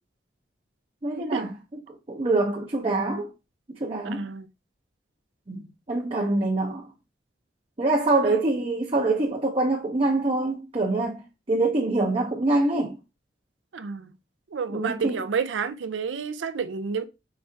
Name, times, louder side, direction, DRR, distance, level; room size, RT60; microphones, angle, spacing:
voice 1, 1.0-1.5 2.1-3.3 3.7-4.3 5.5-5.6 5.9-6.9 7.8-11.2 11.5-13.0 14.7-15.2, right 2 dB, 30° right, 0.6 m, -25 dB
voice 2, 4.0-4.5 8.2-8.4 13.7-14.1 14.5-17.1, right 5 dB, 80° right, 0.5 m, -30 dB
4.8 x 3.3 x 2.6 m
head